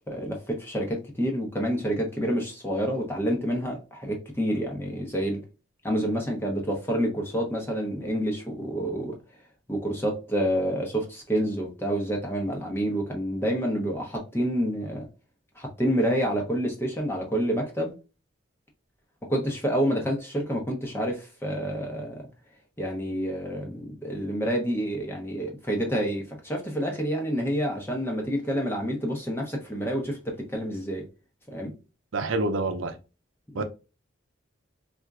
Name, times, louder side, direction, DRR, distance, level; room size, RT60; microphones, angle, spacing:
voice 1, 0.1-5.4 5.8-9.2 9.7-15.1 15.6-17.9 19.3-22.3 22.8-31.1 31.5-31.7 33.5-33.6, equal, 10° left, 0.8 m, -28 dB
voice 2, 32.1-32.9 33.5-33.6, right 2 dB, 80° right, 0.6 m, -27 dB
4.3 x 2.5 x 2.3 m
head